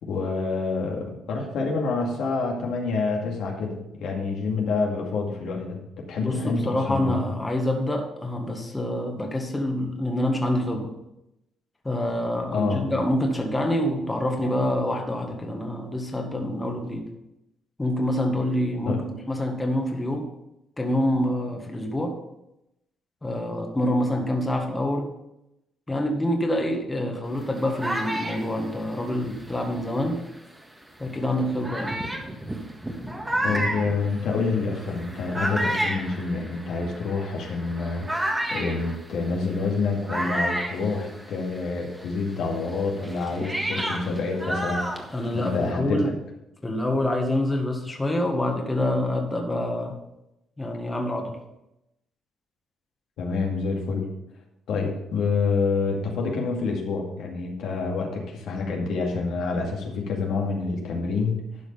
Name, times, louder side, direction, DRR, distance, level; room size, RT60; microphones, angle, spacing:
voice 1, 0.0-5.8 6.0-7.2 12.5-12.8 18.9-19.0 33.4-38.1 38.5-44.8 45.3-46.1 53.2-54.1 54.7-61.5, left 4 dB, 80° left, 0 dB, 2.3 m, -27 dB
voice 2, 6.2-11.0 11.8-17.1 17.8-20.3 20.8-22.2 23.2-25.1 25.9-30.2 31.0-32.0 45.1-46.1 46.6-50.0 50.6-51.4, left 1 dB, 15° left, 2 dB, 1.7 m, -26 dB
sound 1, 27.3-30.4 31.0-31.1 31.6-41.7 41.9-45.7, right 1 dB, 10° right, 1.6 m, -31 dB
12.0 x 4.9 x 5.6 m, 0.88 s
cardioid pair, 90°, 0 cm